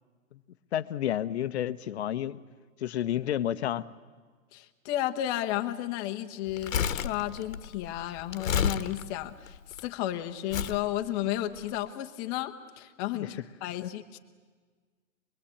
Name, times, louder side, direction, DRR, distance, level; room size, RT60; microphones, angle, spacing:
voice 1, 0.7-2.4 2.8-3.9 13.1-13.3 13.8-13.9, left 11 dB, 50° left, 14 dB, 1.0 m, -30 dB
voice 2, 4.5-14.2, left 13 dB, 20° left, 6 dB, 1.1 m, -33 dB
Crumpling crinkling, 6.5-9.8 10.5-10.8 11.6-11.7, left 7 dB, 65° left, 1.4 m, -31 dB
25.0 x 22.0 x 8.6 m, 1.5 s
hypercardioid pair, 150°, 43 cm